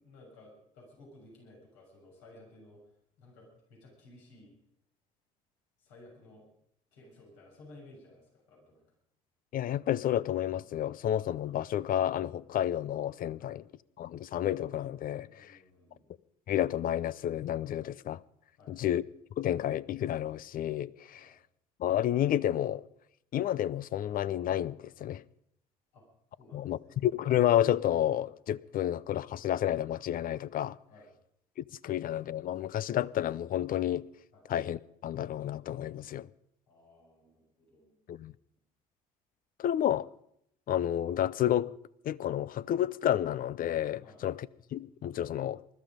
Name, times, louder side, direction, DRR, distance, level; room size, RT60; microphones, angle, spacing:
voice 1, 0.0-2.8 3.2-4.5 5.8-6.5 6.9-8.8 13.4-13.5 15.3-16.1 18.6-18.9 21.1-21.3 25.9-26.0 26.4-27.0 30.9-31.1 34.3-34.5 36.7-38.0 44.0-44.2, left 2 dB, 75° left, 6.8 m, -56 dB
voice 2, 9.5-13.6 14.0-15.6 16.5-18.2 18.7-19.0 19.4-21.3 21.8-22.8 23.3-25.2 26.5-30.8 31.6-34.1 34.5-36.3 38.1-38.3 39.6-40.1 40.7-41.7 42.0-45.6, left 11 dB, 50° left, 0.6 m, -30 dB
20.5 x 13.0 x 5.2 m
hypercardioid pair, 60°, 19 cm